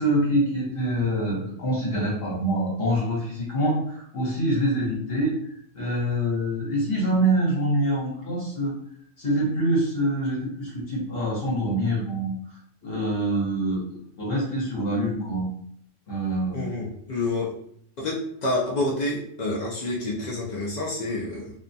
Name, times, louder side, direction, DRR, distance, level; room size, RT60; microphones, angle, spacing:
voice 1, 0.0-8.7 9.2-13.8 14.2-15.5 16.1-16.7, right 1 dB, 55° left, -5 dB, 1.1 m, -25 dB
voice 2, 16.5-17.5 18.0-21.5, left 2 dB, 85° left, -4 dB, 0.3 m, -28 dB
2.5 x 2.2 x 2.6 m, 0.67 s
omnidirectional pair, 1.3 m